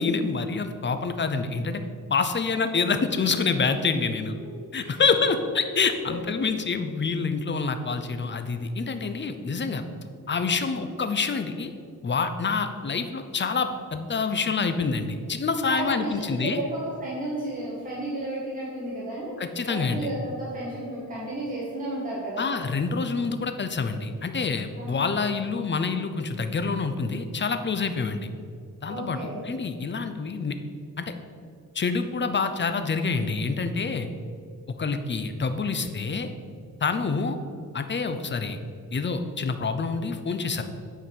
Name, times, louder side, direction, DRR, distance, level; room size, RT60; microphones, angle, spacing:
voice 1, 0.0-1.8 2.1-4.3 4.7-9.8 10.3-11.7 12.0-16.6 19.4-20.1 22.4-28.3 28.8-30.6 31.0-31.1 31.7-34.1 34.8-36.3 36.8-37.4 37.7-38.6 38.9-40.6, left 4 dB, 35° left, 9 dB, 0.6 m, -27 dB
voice 2, 15.7-22.4 24.8-24.9 28.9-29.4, right 1 dB, 25° right, -8 dB, 2.0 m, -33 dB
8.7 x 4.7 x 5.3 m, 2.3 s
wide cardioid pair, 110°, 34 cm